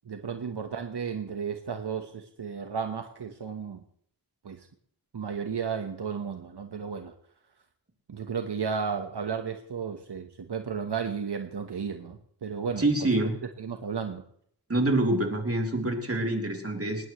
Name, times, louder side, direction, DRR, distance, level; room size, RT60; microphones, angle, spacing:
voice 1, 0.0-3.8 4.4-4.7 5.1-7.1 8.1-13.1 13.6-14.2, right 6 dB, 75° right, 6 dB, 1.3 m, -33 dB
voice 2, 12.8-13.3 14.7-17.1, right 2 dB, 35° right, 2 dB, 3.6 m, -26 dB
20.0 x 19.0 x 3.2 m, 0.66 s
wide cardioid pair, 95°, 41 cm